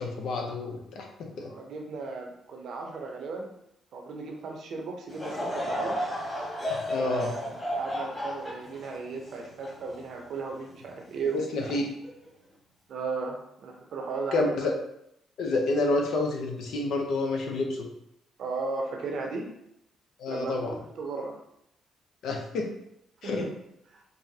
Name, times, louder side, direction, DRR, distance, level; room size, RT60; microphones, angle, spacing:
voice 1, 0.0-1.5 6.9-7.3 11.3-11.8 14.3-14.7 15.4-17.9 20.2-20.8 22.2-22.7 23.2-23.5, left 2 dB, 75° left, 2 dB, 0.7 m, -29 dB
voice 2, 1.4-3.5 3.9-6.0 7.0-11.7 12.9-14.7 18.4-19.5 20.3-21.3 23.2-23.5, right 4 dB, 65° right, 1 dB, 0.8 m, -36 dB
Laughter / Crowd, 5.1-10.6 11.1-11.2 12.0-12.3, equal, 25° left, 1.5 m, -33 dB
5.4 x 2.2 x 2.8 m, 0.79 s
cardioid pair, 90°, 0 cm